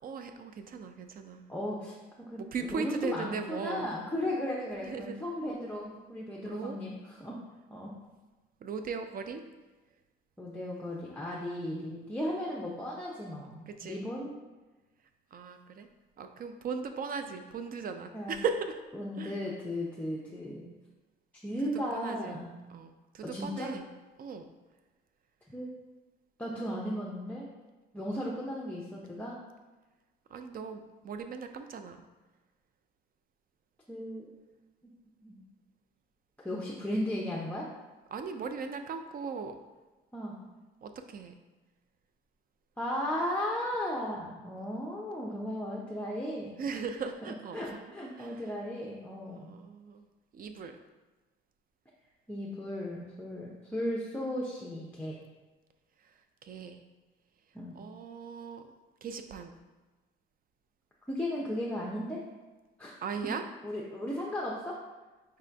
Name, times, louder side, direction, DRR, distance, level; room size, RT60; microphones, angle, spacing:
voice 1, 0.0-1.4 2.4-3.9 4.8-5.2 6.4-6.8 8.6-9.4 13.7-14.0 15.3-15.9 16.2-18.8 19.2-19.4 21.9-22.4 22.7-23.9 24.2-24.5 30.3-32.0 38.1-39.6 40.8-41.3 44.6-44.9 46.6-47.8 48.2-48.4 49.3-50.1 50.3-50.8 56.4-56.8 57.7-58.7 59.0-59.6 63.0-63.4, right 5 dB, 45° right, 7 dB, 0.4 m, -38 dB
voice 2, 1.5-7.4 7.7-7.9 10.4-14.3 18.1-18.4 19.0-20.7 21.4-22.5 23.2-23.7 25.5-25.7 26.4-27.5 27.9-29.4 33.9-34.3 35.2-35.4 36.4-37.7 40.1-40.4 42.8-46.8 47.2-49.5 52.3-55.2 57.5-57.8 61.1-62.2 62.8-62.9 63.2-63.3 63.6-64.8, left 1 dB, 10° left, -4 dB, 0.6 m, -36 dB
4.6 x 2.5 x 3.3 m, 1.2 s
cardioid pair, 90°, 20 cm